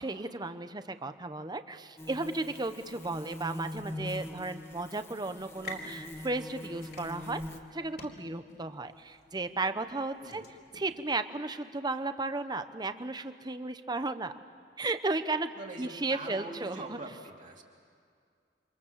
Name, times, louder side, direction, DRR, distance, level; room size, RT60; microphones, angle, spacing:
voice 1, 0.0-7.4 7.7-10.4 10.7-14.3 14.8-15.5 15.8-17.0, right 2 dB, 25° right, 10 dB, 0.9 m, -34 dB
sound 1, 2.0-7.6, left 1 dB, 15° left, 1.5 m, -42 dB
sound 2, 5.5-11.0, left 1 dB, 60° left, 4.0 m, -49 dB
voice 2, 15.6-17.6, right 2 dB, 45° right, -2 dB, 3.0 m, -43 dB
28.5 x 25.5 x 7.5 m, 2.2 s
head